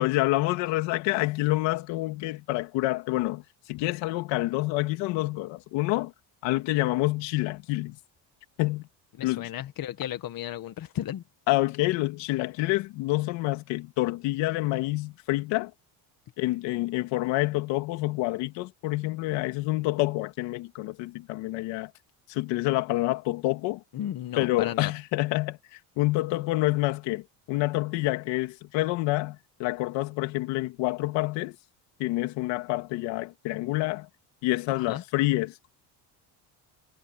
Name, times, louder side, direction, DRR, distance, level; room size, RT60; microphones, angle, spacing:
voice 1, 0.0-3.4 3.7-6.1 6.4-8.0 8.6-8.8 9.2-9.5 11.5-15.7 16.4-21.9 22.3-23.8 24.4-31.6 32.0-34.1 34.4-35.7, left 19 dB, 85° left, 2.6 m, -27 dB
voice 2, 9.2-11.2 23.9-24.9 34.7-35.0, left 11 dB, 55° left, 1.7 m, -34 dB
cardioid pair, 105°, 42 cm